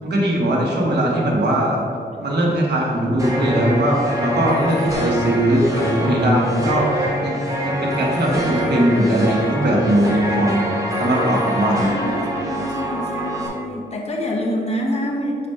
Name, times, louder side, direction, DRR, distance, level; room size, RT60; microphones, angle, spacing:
voice 1, 0.0-1.8 2.2-11.9, right 1 dB, 65° right, -3 dB, 1.3 m, -20 dB
sound 1, 3.2-13.5, equal, 15° right, 1.2 m, -25 dB
voice 2, 11.8-15.5, equal, 35° left, -1 dB, 0.9 m, -26 dB
6.6 x 2.6 x 5.6 m, 2.3 s
wide cardioid pair, 130°, 19 cm